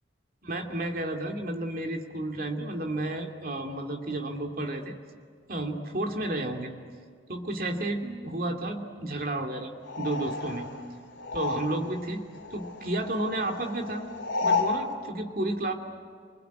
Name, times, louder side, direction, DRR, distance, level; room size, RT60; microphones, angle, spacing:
voice 1, 0.4-5.0 5.5-6.7 7.3-9.7 10.0-10.7 11.3-12.2 12.5-14.0 14.4-15.7, right 1 dB, 50° right, 3 dB, 2.6 m, -31 dB
sound 1, 9.8-12.1 12.3-14.8, left 4 dB, 55° left, 3.1 m, -32 dB
27.5 x 21.0 x 9.4 m, 2.1 s
head